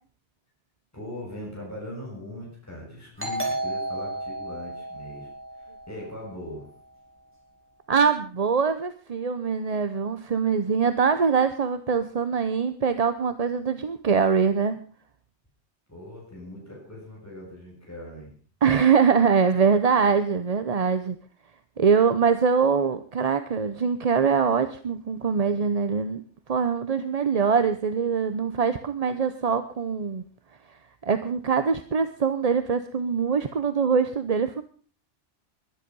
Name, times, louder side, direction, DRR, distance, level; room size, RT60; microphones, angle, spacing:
voice 1, 0.9-6.7 15.9-18.4, left 1 dB, 15° left, -3 dB, 6.5 m, -40 dB
Doorbell, 3.2-6.5, right 1 dB, 10° right, 5.7 m, -33 dB
voice 2, 7.9-14.8 18.6-21.2 21.8-26.2 26.5-30.2 31.0-34.6, right 6 dB, 40° right, 11 dB, 0.8 m, -23 dB
22.0 x 10.5 x 5.4 m, 0.43 s
omnidirectional pair, 1.2 m